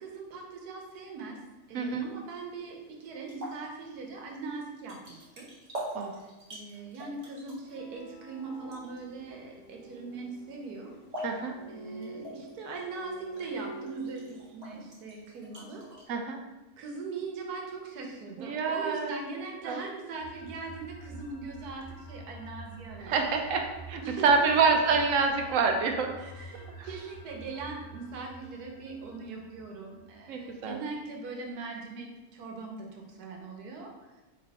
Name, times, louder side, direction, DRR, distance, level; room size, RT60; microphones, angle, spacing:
voice 1, 0.0-1.4 1.7-5.5 6.5-10.9 11.7-15.8 16.8-23.3 24.0-24.6 26.2-34.2, right 4 dB, 85° right, 1 dB, 1.3 m, -40 dB
sound 1, 1.6-16.0, equal, 30° right, 1.1 m, -46 dB
voice 2, 1.7-2.1 5.9-6.1 11.2-11.5 16.1-16.4 18.4-19.2 19.7-19.8 23.0-26.1 26.8-26.9 30.3-30.8, right 4 dB, 70° right, 4 dB, 0.9 m, -27 dB
sound 2, 7.6-14.5, right 2 dB, 65° left, 0.9 m, -46 dB
sound 3, 20.2-31.0, right 2 dB, 20° left, 0.8 m, -48 dB
4.2 x 3.1 x 4.1 m, 1.1 s
omnidirectional pair, 1.6 m